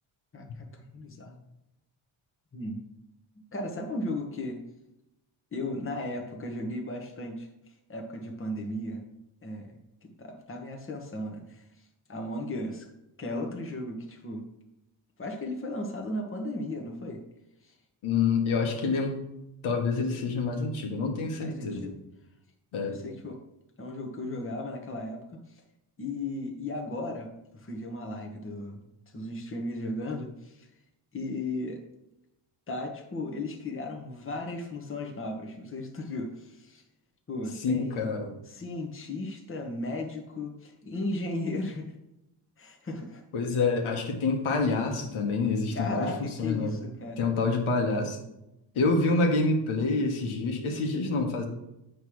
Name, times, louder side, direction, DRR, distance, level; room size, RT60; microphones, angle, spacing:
voice 1, 0.3-1.4 2.5-2.9 3.3-4.6 5.5-7.5 7.9-9.0 9.4-11.6 12.1-12.9 13.2-14.5 15.2-17.2 17.6-17.7 21.4-21.9 22.9-23.4 23.8-25.6 26.0-28.8 29.1-30.7 31.1-31.8 32.7-36.8 37.3-38.1 38.4-41.9 42.6-43.2 45.7-47.2, left 2 dB, 25° left, 1 dB, 1.2 m, -36 dB
voice 2, 18.0-19.2 19.6-21.9 22.7-23.0 37.6-38.3 43.3-46.1 46.4-46.8 47.2-48.2 48.7-51.4, left 3 dB, 80° left, 2 dB, 1.4 m, -27 dB
7.9 x 3.3 x 6.2 m, 0.90 s
cardioid pair, 105°, 48 cm